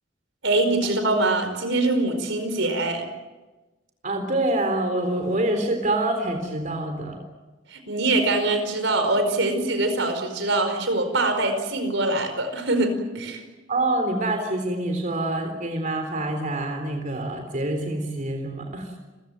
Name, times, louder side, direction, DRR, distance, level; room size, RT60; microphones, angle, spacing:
voice 1, 0.4-3.1 7.7-13.4, right 2 dB, 75° right, 7 dB, 4.9 m, -23 dB
voice 2, 4.0-7.2 13.7-18.9, right 1 dB, 40° right, 5 dB, 3.6 m, -26 dB
29.5 x 16.0 x 9.4 m, 1.2 s
head